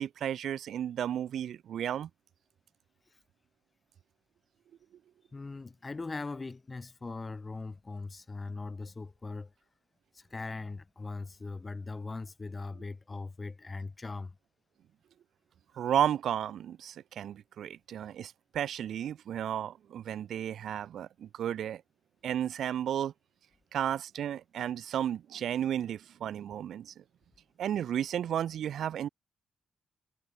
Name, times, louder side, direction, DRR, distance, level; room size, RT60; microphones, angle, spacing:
voice 1, 0.0-2.1 15.7-21.8 22.2-23.1 23.7-27.0 27.6-29.1, right 10 dB, 70° right, 0.3 m, -33 dB
voice 2, 5.3-9.5 10.1-14.4, left 3 dB, 20° left, 4.9 m, -40 dB
wide cardioid pair, 160°, 0 cm